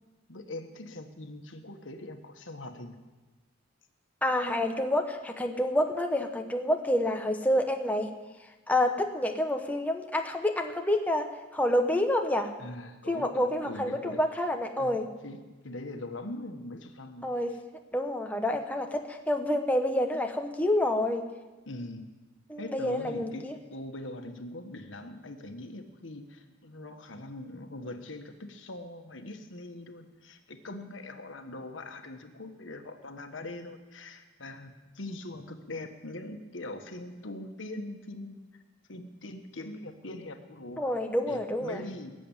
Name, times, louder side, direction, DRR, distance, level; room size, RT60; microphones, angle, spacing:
voice 1, 0.3-3.0 12.6-14.2 14.7-17.3 21.7-22.1 22.6-38.4 38.9-40.9 41.3-42.1, left 2 dB, 75° left, 6 dB, 1.5 m, -42 dB
voice 2, 4.2-8.1 8.7-12.5 13.1-15.1 17.2-17.5 17.9-21.3 22.5-23.5 40.8-41.8, left 1 dB, 10° left, 4 dB, 0.9 m, -28 dB
20.0 x 7.8 x 8.9 m, 1.2 s
head